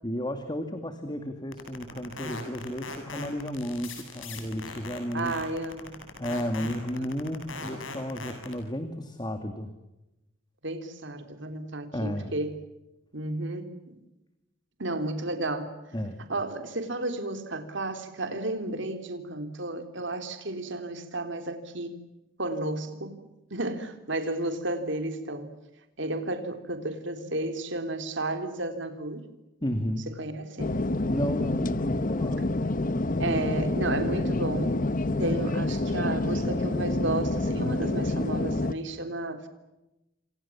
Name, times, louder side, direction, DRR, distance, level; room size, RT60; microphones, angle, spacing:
voice 1, 0.0-5.4 6.2-9.7 11.9-12.3 15.9-16.2 29.6-30.0 31.1-32.4, equal, 20° left, 7 dB, 2.4 m, -33 dB
sound 1, 1.5-8.5, left 4 dB, 70° left, 7.8 m, -39 dB
voice 2, 5.1-6.0 6.9-7.1 10.6-12.6 13.1-14.0 14.8-15.8 16.3-22.0 22.4-25.5 26.0-29.3 30.1-30.8 33.2-34.8 35.2-39.5, right 2 dB, 65° right, 7 dB, 3.5 m, -32 dB
sound 2, 30.6-38.7, left 2 dB, 40° left, 1.0 m, -28 dB
29.0 x 27.0 x 7.3 m, 0.97 s
head